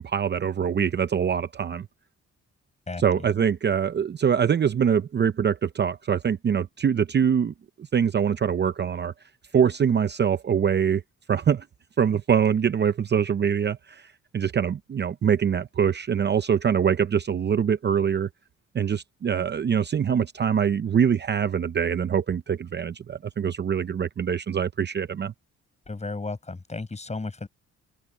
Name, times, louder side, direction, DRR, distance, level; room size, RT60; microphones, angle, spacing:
voice 1, 0.0-1.9 3.0-7.5 7.9-9.1 9.5-11.0 11.3-11.7 12.0-18.3 18.7-25.3, right 7 dB, 35° right, 0.7 m, -24 dB
voice 2, 2.9-3.2 25.9-27.5, left 3 dB, 20° left, 7.2 m, -34 dB
open air
cardioid pair, 90°, 30 cm